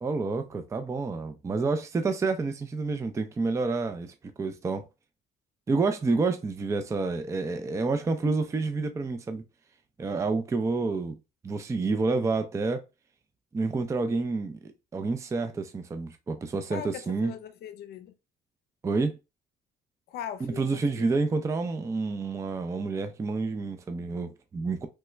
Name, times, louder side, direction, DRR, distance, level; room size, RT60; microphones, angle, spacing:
voice 1, 0.0-4.8 5.7-9.4 10.0-11.1 11.4-12.8 13.5-17.3 18.8-19.2 20.6-24.9, right 3 dB, 15° right, 0.4 m, -29 dB
voice 2, 16.7-18.1 20.1-21.1, left 9 dB, 70° left, 0.5 m, -40 dB
3.2 x 2.2 x 3.1 m
cardioid pair, 110°, 17 cm